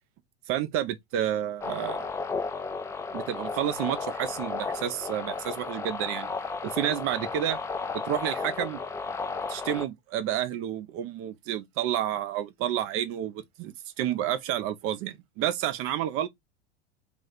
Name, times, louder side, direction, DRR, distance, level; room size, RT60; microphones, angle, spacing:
voice 1, 0.5-2.1 3.1-6.3 6.6-7.6 8.0-8.8 9.5-16.3, right 11 dB, 40° right, 0.5 m, -30 dB
sound 1, 1.6-9.9, left 4 dB, 10° left, 0.3 m, -34 dB
2.4 x 2.4 x 4.1 m
hypercardioid pair, 80°, 33 cm